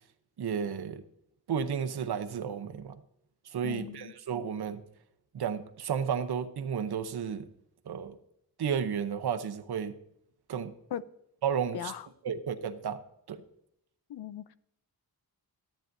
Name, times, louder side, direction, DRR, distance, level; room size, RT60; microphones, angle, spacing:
voice 1, 0.4-1.0 1.5-3.0 3.5-4.8 5.3-7.5 7.9-8.2 8.6-10.0 10.5-10.7 11.4-11.9 12.2-13.0 13.3-13.4, right 7 dB, 80° right, 0.8 m, -32 dB
voice 2, 3.6-4.1 10.9-11.0 11.7-12.1 14.1-14.4, left 10 dB, 85° left, 0.6 m, -38 dB
14.0 x 8.9 x 2.6 m
wide cardioid pair, 165°, 38 cm